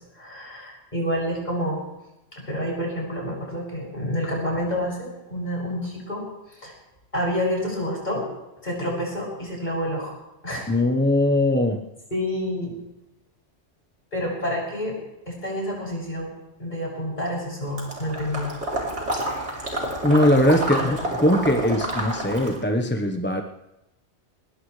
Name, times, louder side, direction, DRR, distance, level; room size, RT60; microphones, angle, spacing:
voice 1, 0.0-1.8 2.3-6.7 7.1-8.3 8.6-10.2 10.4-10.7 12.1-12.8 14.1-15.0 15.3-16.3 16.6-18.5 20.8-21.0, equal, 40° left, -3 dB, 7.0 m, -28 dB
voice 2, 10.7-11.8 20.0-23.4, left 1 dB, 10° left, 4 dB, 1.0 m, -20 dB
Water / Liquid, 17.8-22.6, right 1 dB, 70° right, 3.9 m, -29 dB
21.5 x 20.0 x 3.3 m, 0.93 s
omnidirectional pair, 1.2 m